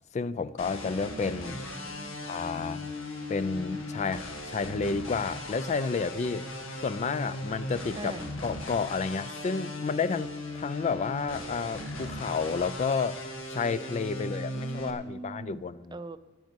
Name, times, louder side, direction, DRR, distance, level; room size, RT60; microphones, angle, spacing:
voice 1, 0.1-1.6 2.3-2.9 3.3-6.4 6.8-8.2 8.4-13.2 13.5-15.9, left 5 dB, 35° left, 15 dB, 0.3 m, -31 dB
sound 1, 0.6-14.9, left 1 dB, 80° left, 1.7 m, -38 dB
voice 2, 1.5-2.2 8.0-8.3 14.1-16.2, right 2 dB, 20° right, 12 dB, 0.5 m, -42 dB
9.3 x 9.0 x 7.8 m, 1.3 s
head